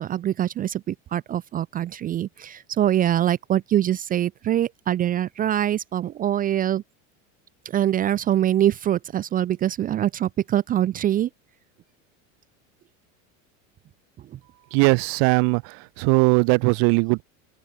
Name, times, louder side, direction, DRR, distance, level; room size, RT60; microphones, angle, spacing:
voice 1, 0.0-6.8 7.7-11.3, right 11 dB, 25° right, 0.3 m, -24 dB
voice 2, 14.7-17.2, right 38 dB, 65° right, 1.5 m, -20 dB
open air
supercardioid pair, 120°, 40 cm